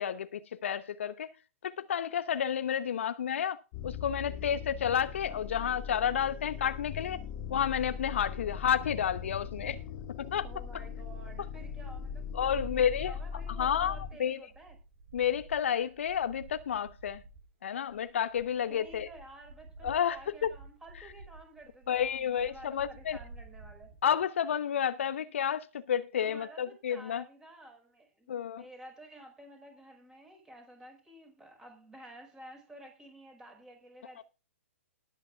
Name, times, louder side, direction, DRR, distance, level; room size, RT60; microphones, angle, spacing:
voice 1, 0.0-1.3 1.6-3.6 3.8-7.2 7.5-9.8 10.1-10.5 12.3-13.1 13.6-14.4 15.1-17.2 17.6-19.1 19.8-20.5 21.9-23.2 24.0-27.2 28.3-28.6 34.2-34.3, left 8 dB, 60° left, 0.9 m, -31 dB
sound 1, 3.7-14.1, left 7 dB, 40° left, 1.7 m, -40 dB
sound 2, 8.6-17.5 17.8-24.0, right 3 dB, 50° right, 4.6 m, -52 dB
voice 2, 10.4-14.8 18.7-24.0 26.2-34.2, right 1 dB, 10° right, 5.2 m, -52 dB
20.0 x 8.9 x 2.4 m
figure-of-eight pair, 120°, 8 cm